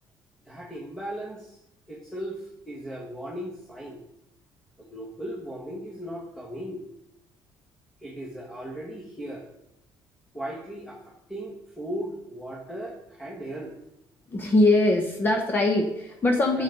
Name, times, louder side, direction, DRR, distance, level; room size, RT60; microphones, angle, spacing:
voice 1, 0.4-1.6 1.9-4.0 4.8-6.8 8.0-9.4 10.3-11.0 11.3-13.7 16.5-16.6, right 1 dB, 5° left, -3 dB, 1.5 m, -37 dB
voice 2, 14.3-16.6, left 2 dB, 25° left, 2 dB, 1.0 m, -22 dB
11.5 x 7.2 x 3.9 m, 0.81 s
cardioid pair, 155°, 9 cm